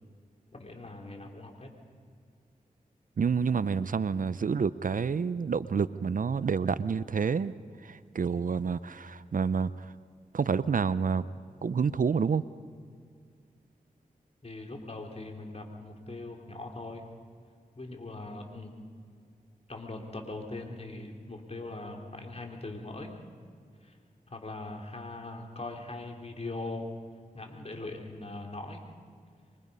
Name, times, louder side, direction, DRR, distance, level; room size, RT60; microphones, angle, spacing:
voice 1, 0.5-1.7 14.4-17.0 17.7-18.7 19.7-23.1 23.8-24.0 24.3-26.9 27.3-28.8, left 2 dB, 45° left, 2 dB, 3.4 m, -41 dB
voice 2, 3.2-7.5 7.8-9.9 10.3-11.3 11.6-12.4, right 6 dB, 65° right, 16 dB, 0.6 m, -28 dB
25.5 x 23.5 x 5.5 m, 2.1 s
cardioid pair, 45°, 15 cm